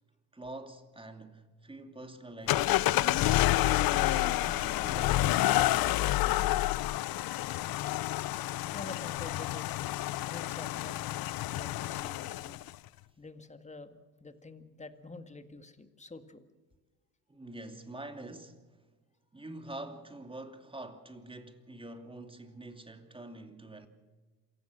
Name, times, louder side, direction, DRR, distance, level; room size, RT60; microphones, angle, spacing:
voice 1, 0.3-3.0 3.5-6.0 17.3-18.9 19.3-23.9, right 2 dB, 10° right, 2.7 m, -46 dB
sound 1, 2.5-12.7, left 16 dB, 60° left, 0.7 m, -29 dB
voice 2, 8.7-9.8 10.3-11.0 11.5-12.6 13.2-16.4, left 3 dB, 15° left, 2.0 m, -47 dB
27.5 x 16.0 x 6.4 m
supercardioid pair, 85°, 41 cm